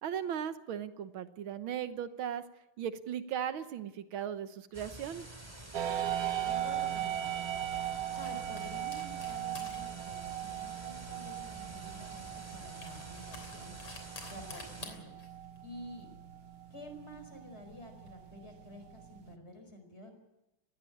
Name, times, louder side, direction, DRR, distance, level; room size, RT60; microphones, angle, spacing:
voice 1, 0.0-2.4 2.8-5.3, right 9 dB, 70° right, 11 dB, 1.8 m, -37 dB
sound 1, 4.7-14.9, right 1 dB, 10° right, 2.6 m, -49 dB
sound 2, 5.5-18.1, left 4 dB, 90° left, 4.3 m, -53 dB
sound 3, 5.7-19.3, right 11 dB, 50° right, 1.2 m, -39 dB
voice 2, 6.4-7.4 8.1-15.1 15.6-16.2 16.7-20.1, equal, 30° left, 6 dB, 4.8 m, -50 dB
20.0 x 16.0 x 8.6 m, 0.94 s
omnidirectional pair, 2.4 m